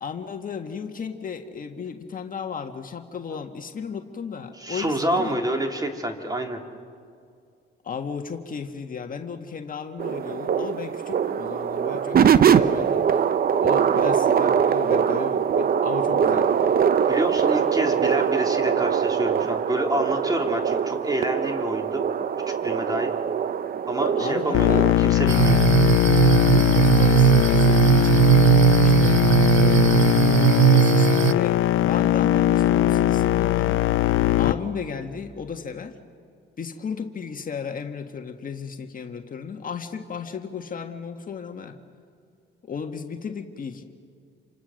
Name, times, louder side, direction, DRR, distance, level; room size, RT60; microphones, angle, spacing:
voice 1, 0.0-5.4 7.8-13.2 13.6-16.8 24.2-24.9 26.4-28.3 28.8-29.2 29.5-36.0 36.6-41.8 42.6-43.8, left 6 dB, 45° left, 5 dB, 1.6 m, -34 dB
voice 2, 4.6-6.6 17.1-22.0 22.5-23.1 23.9-25.6, right 1 dB, 20° right, 3 dB, 3.1 m, -28 dB
sound 1, 10.0-24.9, right 7 dB, 50° right, 0.8 m, -22 dB
sound 2, 24.5-34.5, left 13 dB, 85° left, 0.7 m, -20 dB
sound 3, 25.3-31.3, right 15 dB, 75° right, 0.6 m, -18 dB
28.5 x 25.5 x 6.5 m, 2.3 s
cardioid pair, 90°, 20 cm